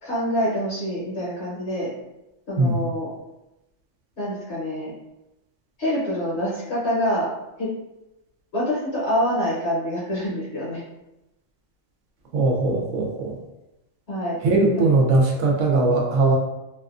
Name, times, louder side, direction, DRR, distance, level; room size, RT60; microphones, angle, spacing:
voice 1, 0.0-1.9 2.5-3.1 4.2-4.9 5.8-7.3 7.6-7.7 8.5-10.8 14.1-14.4, equal, 55° left, -8 dB, 1.0 m, -26 dB
voice 2, 2.6-2.9 12.3-13.4 14.4-16.4, right 3 dB, 70° right, 0 dB, 0.9 m, -20 dB
2.6 x 2.3 x 2.4 m, 0.94 s
omnidirectional pair, 1.5 m